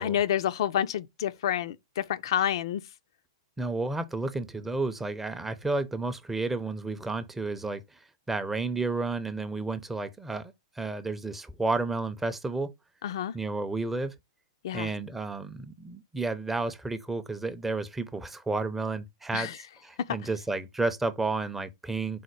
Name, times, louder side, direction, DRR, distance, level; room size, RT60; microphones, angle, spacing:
voice 1, 0.0-2.8 13.0-13.3 14.6-14.9 19.3-19.6, left 10 dB, 65° left, 0.4 m, -28 dB
voice 2, 3.6-12.7 13.3-14.1 14.7-22.2, right 3 dB, 10° right, 0.5 m, -32 dB
4.2 x 2.1 x 4.5 m
hypercardioid pair, 120°, 3 cm